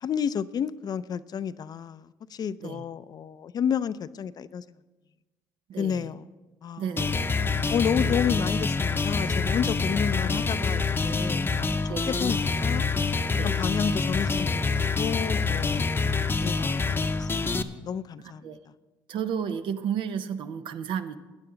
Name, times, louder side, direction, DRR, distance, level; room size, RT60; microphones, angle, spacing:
voice 1, 0.0-4.6 5.8-6.3 6.6-6.9 7.7-11.7 12.1-12.8 13.4-14.7 15.0-17.5 17.8-18.6, left 8 dB, 50° left, 15 dB, 0.5 m, -31 dB
voice 2, 5.7-6.1 6.8-7.3 7.6-8.1 11.9-12.2 13.3-13.5 18.2-18.6 19.1-21.2, right 8 dB, 70° right, 10 dB, 0.8 m, -33 dB
sound 1, 7.0-17.6, left 4 dB, 25° left, 0.8 m, -26 dB
17.0 x 9.9 x 3.9 m, 1.2 s
supercardioid pair, 75°, 9 cm